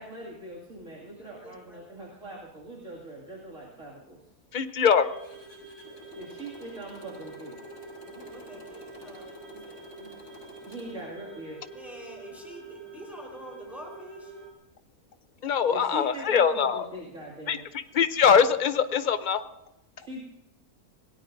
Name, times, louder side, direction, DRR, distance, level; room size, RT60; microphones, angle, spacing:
voice 1, 0.0-4.2 6.1-7.6 10.0-10.1 10.6-11.7 15.7-17.7 20.0-20.2, right 1 dB, 55° right, -5 dB, 2.9 m, -41 dB
voice 2, 1.1-2.0 8.1-9.9 11.7-14.3, equal, ahead, -1 dB, 4.3 m, -47 dB
voice 3, 4.5-5.1 15.4-16.8 17.5-17.6 17.9-19.4, left 7 dB, 45° left, 11 dB, 0.7 m, -22 dB
sound 1, 4.9-14.5, right 3 dB, 15° left, 3.0 m, -46 dB
Motorcycle, 5.2-11.0, left 1 dB, 85° left, 6.4 m, -50 dB
26.5 x 18.0 x 2.7 m, 0.91 s
omnidirectional pair, 1.6 m